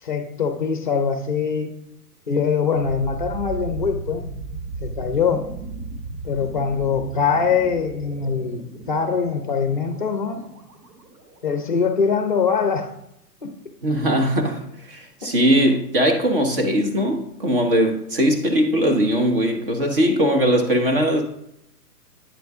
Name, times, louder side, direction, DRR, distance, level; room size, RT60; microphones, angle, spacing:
voice 1, 0.0-1.7 2.3-4.3 4.8-5.5 6.2-10.4 11.4-12.9 13.4-13.5 15.2-15.3, left 6 dB, 30° left, 0.6 m, -23 dB
sound 1, 2.7-11.6, right 3 dB, 75° right, 1.5 m, -35 dB
voice 2, 13.8-14.6 14.9-21.2, equal, 35° right, 0.9 m, -20 dB
9.1 x 3.8 x 3.5 m
hypercardioid pair, 170°, 48 cm